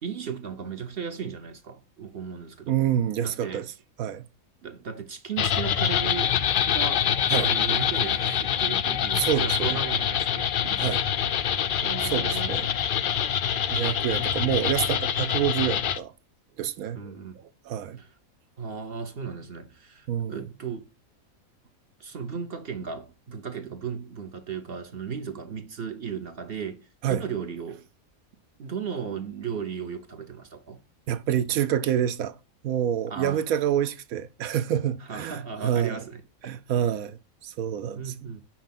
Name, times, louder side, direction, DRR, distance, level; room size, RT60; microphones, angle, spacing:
voice 1, 0.0-2.8 3.2-3.7 4.6-6.4 6.7-7.1 7.4-11.2 11.8-12.5 14.4-14.6 16.9-17.4 17.9-18.1 18.6-20.8 22.0-27.9 28.6-30.8 33.1-33.4 35.1-36.5 38.0-38.4, right 6 dB, 50° right, 0.8 m, -35 dB
voice 2, 2.7-3.7 4.0-4.3 7.3-7.5 9.1-9.8 10.8-11.0 12.0-12.7 13.7-16.1 16.6-17.1 17.7-18.0 20.1-20.4 27.0-27.2 31.1-32.3 32.6-36.0 36.4-37.2 37.4-38.3, right 10 dB, 80° right, 1.1 m, -27 dB
sound 1, 5.4-16.0, left 9 dB, 80° left, 0.4 m, -25 dB
5.9 x 4.6 x 5.7 m
omnidirectional pair, 1.5 m